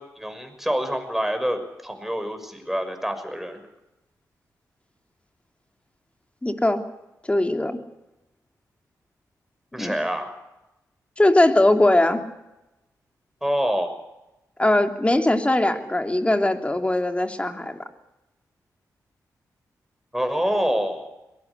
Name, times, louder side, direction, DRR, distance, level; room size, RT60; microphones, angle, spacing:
voice 1, 0.0-3.6 9.7-10.3 13.4-13.9 20.1-21.1, equal, 5° right, 7 dB, 6.1 m, -26 dB
voice 2, 6.4-6.8 7.3-7.8 9.8-10.0 11.2-12.2 14.6-17.8, left 1 dB, 15° left, 5 dB, 3.1 m, -20 dB
22.0 x 20.0 x 8.3 m, 0.97 s
cardioid pair, 55°, 7 cm